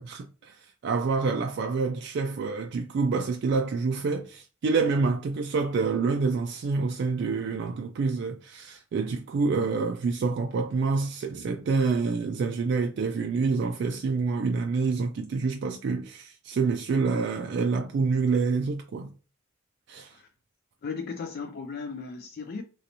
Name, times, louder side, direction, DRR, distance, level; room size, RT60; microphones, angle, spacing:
voice 1, 0.0-19.1 19.9-20.2, right 4 dB, 55° right, 0.3 m, -27 dB
voice 2, 20.8-22.6, left 5 dB, 50° left, 0.4 m, -36 dB
3.1 x 2.6 x 2.8 m
head